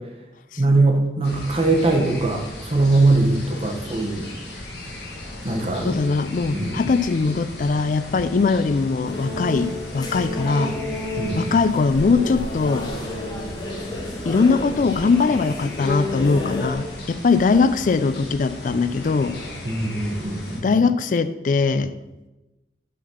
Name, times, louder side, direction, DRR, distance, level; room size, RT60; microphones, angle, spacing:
voice 1, 0.6-4.2 5.4-6.0 6.5-6.8 11.2-11.5 19.6-20.7, right 2 dB, 35° right, 2 dB, 0.9 m, -21 dB
sound 1, 1.2-20.6, left 1 dB, 65° left, 1.4 m, -36 dB
voice 2, 5.8-9.7 9.9-10.8 11.3-12.9 14.3-19.3 20.6-21.9, left 4 dB, 45° left, 13 dB, 0.3 m, -21 dB
sound 2, 9.0-16.7, left 1 dB, 25° left, 0.9 m, -31 dB
6.1 x 4.0 x 5.6 m, 1.0 s
head